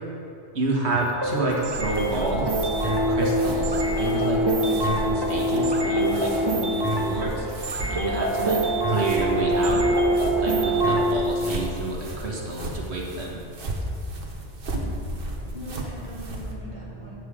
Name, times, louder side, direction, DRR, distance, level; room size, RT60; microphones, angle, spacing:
voice 1, 0.5-4.4 4.8-7.5 7.9-8.6 8.9-9.8 10.4-13.4, right 2 dB, 65° right, -1 dB, 1.5 m, -29 dB
sound 1, 0.9-11.1, right 1 dB, 25° right, 0.8 m, -24 dB
sound 2, 1.5-16.5, right 1 dB, 50° right, 1.1 m, -34 dB
voice 2, 14.7-17.1, equal, 40° left, -7 dB, 2.4 m, -39 dB
9.3 x 7.2 x 4.8 m, 2.9 s
omnidirectional pair, 1.2 m